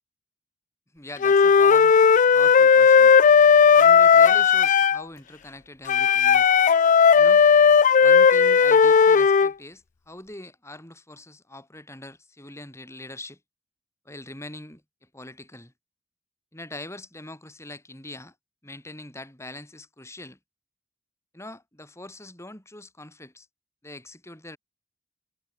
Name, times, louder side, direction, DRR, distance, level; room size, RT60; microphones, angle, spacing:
voice 1, 0.9-2.0 2.3-3.2 3.7-6.5 7.1-7.4 8.0-13.4 14.0-15.7 16.5-18.3 18.6-20.4 21.3-23.5 23.8-24.6, left 1 dB, 15° left, 4.9 m, -42 dB
Wind instrument woodwind instrument, 1.2-5.0 5.9-9.5, left 6 dB, 40° left, 0.4 m, -16 dB
head